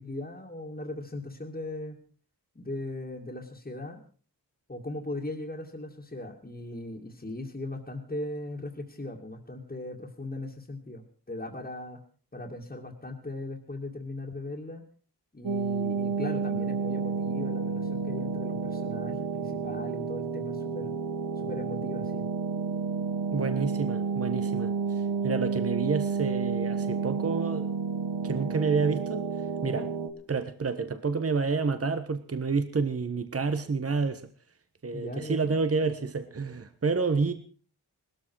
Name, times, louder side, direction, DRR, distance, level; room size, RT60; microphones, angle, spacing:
voice 1, 0.0-2.0 2.6-4.0 4.7-12.0 12.3-14.8 15.3-20.9 21.4-22.2 34.9-35.5 37.3-37.4, left 2 dB, 20° left, 2.4 m, -38 dB
sound 1, 15.4-30.1, right 5 dB, 75° right, 3.0 m, -30 dB
voice 2, 23.3-24.7 25.2-27.7 28.2-29.2 29.6-29.9 30.3-34.3 34.8-37.3, right 4 dB, 35° right, 1.3 m, -29 dB
19.0 x 13.5 x 4.7 m
wide cardioid pair, 105°, 40 cm